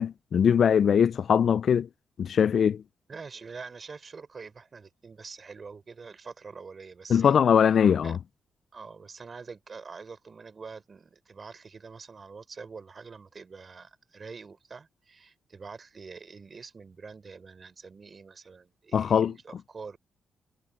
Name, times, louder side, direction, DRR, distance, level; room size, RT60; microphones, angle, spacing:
voice 1, 0.0-1.9 2.2-2.8 7.1-8.2 18.9-19.3, left 7 dB, 60° left, 0.3 m, -21 dB
voice 2, 3.1-7.8 8.0-8.2 8.7-20.0, right 5 dB, 40° right, 5.5 m, -45 dB
cardioid pair, 95°, 0 cm